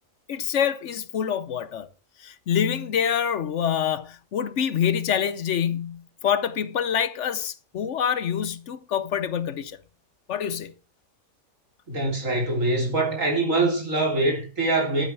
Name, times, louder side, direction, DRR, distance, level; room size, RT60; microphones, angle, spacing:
voice 1, 0.3-1.9 2.2-9.8 10.3-10.7, left 8 dB, 65° left, 1.0 m, -26 dB
voice 2, 11.9-15.0, right 2 dB, 75° right, 4.0 m, -24 dB
12.0 x 8.8 x 4.6 m
omnidirectional pair, 1.4 m